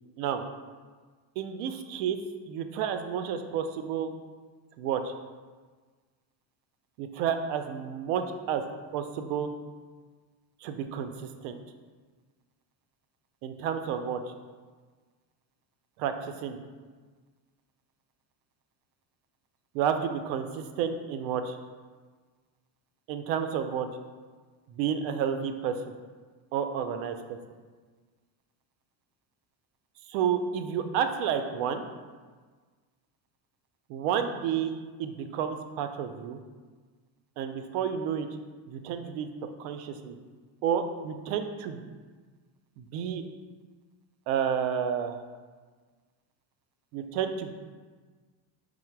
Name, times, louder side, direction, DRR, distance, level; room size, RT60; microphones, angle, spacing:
voice 1, 1.4-2.2 2.5-4.1 4.8-5.1 7.0-8.6 8.9-9.5 10.6-11.1 11.4-11.6 13.4-14.2 16.0-16.6 19.7-21.6 23.1-23.9 24.7-25.8 26.5-27.4 30.1-31.8 33.9-36.4 37.4-38.3 38.7-39.3 39.6-40.2 40.6-41.8 42.8-43.3 44.3-45.2 46.9-47.5, right 8 dB, 80° right, 7 dB, 0.6 m, -30 dB
4.8 x 2.1 x 4.5 m, 1.5 s
cardioid pair, 155°, 47 cm